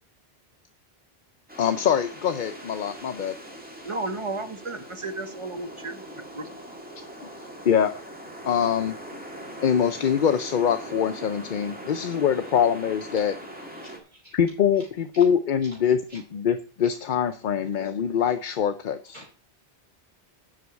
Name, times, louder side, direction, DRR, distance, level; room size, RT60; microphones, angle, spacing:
sound 1, 1.5-14.0, right 1 dB, 10° right, 2.1 m, -41 dB
voice 1, 1.6-3.3 7.6-7.9 8.4-9.0 9.6-13.3 14.3-19.2, left 8 dB, 55° left, 9 dB, 0.7 m, -24 dB
voice 2, 3.8-6.0 6.3-6.5, right 2 dB, 30° right, 8 dB, 1.0 m, -33 dB
voice 3, 13.7-14.4 14.8-14.9 15.1-15.3 15.6-15.8 16.1-16.2 19.1-19.4, right 1 dB, 45° right, -5 dB, 4.7 m, -48 dB
7.7 x 6.4 x 8.1 m, 0.42 s
omnidirectional pair, 1.1 m